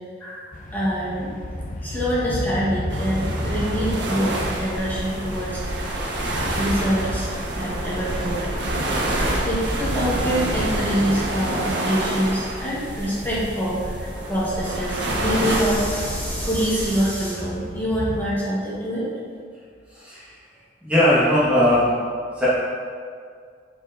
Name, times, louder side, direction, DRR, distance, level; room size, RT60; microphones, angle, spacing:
voice 1, 0.2-1.3 1.8-6.0 6.5-7.3 7.5-8.4 9.4-19.1, equal, 10° left, -8 dB, 1.6 m, -25 dB
sound 1, 0.5-18.3, left 1 dB, 45° left, 0.6 m, -34 dB
sound 2, 2.9-17.0, right 1 dB, 70° right, 1.4 m, -27 dB
voice 2, 19.9-20.3 20.8-21.9 22.3-22.5, left 1 dB, 5° right, -10 dB, 1.4 m, -19 dB
8.8 x 4.6 x 4.0 m, 2.1 s
head